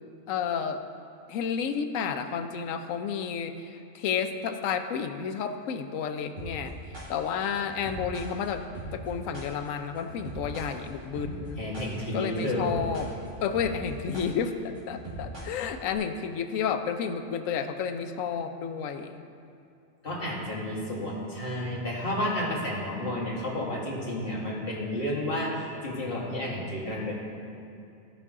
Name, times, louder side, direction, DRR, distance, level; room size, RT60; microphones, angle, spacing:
voice 1, 0.3-0.8 1.3-6.7 7.1-8.6 8.9-11.6 12.1-13.1 13.4-19.2, left 7 dB, 80° left, 7 dB, 1.0 m, -31 dB
sound 1, 6.4-16.0, right 1 dB, 35° right, 2.1 m, -40 dB
voice 2, 11.6-12.7 20.0-27.1, left 1 dB, 45° left, -5 dB, 2.0 m, -31 dB
16.0 x 5.3 x 3.6 m, 2.6 s
omnidirectional pair, 1.4 m